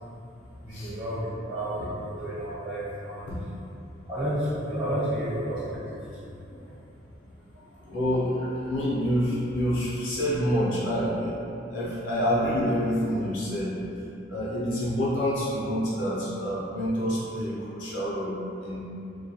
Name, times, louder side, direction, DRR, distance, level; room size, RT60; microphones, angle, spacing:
voice 1, 0.6-3.3 4.1-6.3 6.6-6.7, right 1 dB, 25° right, -13 dB, 1.1 m, -31 dB
voice 2, 7.5-11.5 11.7-13.8 14.3-18.9, equal, 70° left, -8 dB, 0.6 m, -27 dB
2.2 x 2.2 x 2.8 m, 2.7 s
head